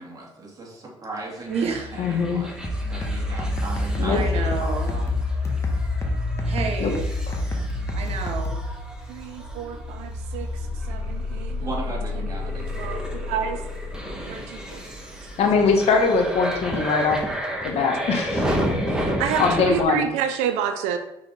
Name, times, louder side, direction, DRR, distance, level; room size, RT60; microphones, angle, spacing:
voice 1, 0.0-1.6 1.9-5.2 11.6-12.7, right 2 dB, 30° right, -2 dB, 2.6 m, -37 dB
sound 1, 1.5-19.8, left 1 dB, 5° right, 1.9 m, -30 dB
voice 2, 1.5-2.0 4.1-4.9 6.4-7.0 7.9-8.6, right 5 dB, 65° right, 4 dB, 1.1 m, -29 dB
voice 3, 2.0-2.4 4.0-4.2 6.8-6.9 7.3-7.4 15.4-17.2 17.6-18.6 19.4-20.1, left 4 dB, 65° left, 3 dB, 1.4 m, -22 dB
sound 2, 2.6-8.6, left 1 dB, 25° left, 1.5 m, -28 dB
voice 4, 9.1-10.5 10.9-11.7 12.8-13.6 14.3-14.8 17.7-17.9 18.9-21.0, right 8 dB, 85° right, 8 dB, 0.6 m, -29 dB
5.8 x 4.7 x 5.0 m, 0.87 s
supercardioid pair, 75°, 11 cm